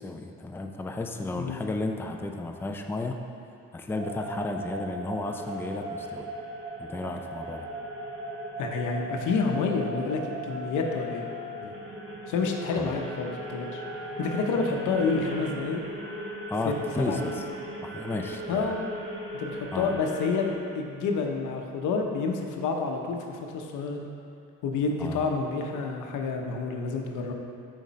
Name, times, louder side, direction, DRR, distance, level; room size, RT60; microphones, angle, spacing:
voice 1, 0.0-3.2 3.7-6.3 6.8-7.7 12.7-12.9 16.5-17.4 17.8-18.7 19.7-19.9 25.0-25.3, left 2 dB, 5° left, 3 dB, 0.4 m, -33 dB
sound 1, 4.0-20.5, right 1 dB, 45° right, 1.4 m, -38 dB
voice 2, 8.6-11.3 11.6-11.7 12.3-13.8 14.2-15.8 16.6-17.4 18.5-18.8 19.3-24.1 24.6-27.3, left 4 dB, 80° left, 2 dB, 0.8 m, -29 dB
7.3 x 5.1 x 4.1 m, 2.4 s
cardioid pair, 90°, 30 cm